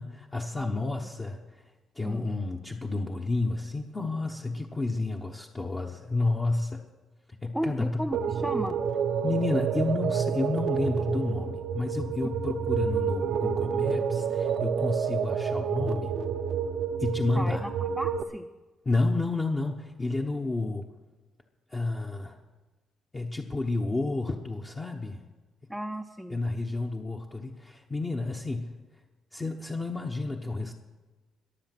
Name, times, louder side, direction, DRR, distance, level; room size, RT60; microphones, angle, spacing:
voice 1, 0.0-1.4 1.9-6.8 7.4-8.0 9.2-16.1 17.0-17.7 18.9-20.8 21.7-22.4 23.1-25.2 26.3-28.7 29.3-30.7, left 3 dB, 25° left, 0 dB, 1.1 m, -30 dB
voice 2, 0.5-1.1 2.0-2.3 7.5-8.8 17.3-18.5 25.7-26.4, equal, ahead, 5 dB, 0.6 m, -35 dB
sound 1, 8.1-18.2, right 7 dB, 70° right, 0.7 m, -29 dB
21.5 x 7.2 x 6.1 m, 1.2 s
cardioid pair, 90°, 0 cm